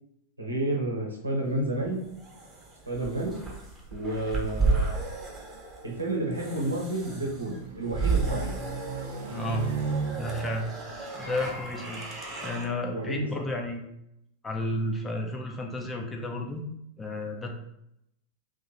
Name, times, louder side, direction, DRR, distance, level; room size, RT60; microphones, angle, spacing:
voice 1, 0.4-2.0 2.8-3.4 3.9-5.0 5.8-8.6 12.9-13.3, right 1 dB, 80° right, -1 dB, 0.8 m, -30 dB
sound 1, 1.6-12.7, right 4 dB, 20° right, 0.9 m, -33 dB
sound 2, 6.2-11.7, right 4 dB, 60° right, 0.5 m, -37 dB
voice 2, 9.3-9.7 10.1-10.7 11.1-12.1 12.4-13.9 14.4-16.6 17.0-17.6, left 1 dB, 15° left, 2 dB, 0.5 m, -32 dB
2.7 x 2.5 x 4.0 m, 0.81 s
figure-of-eight pair, 90°, 0 cm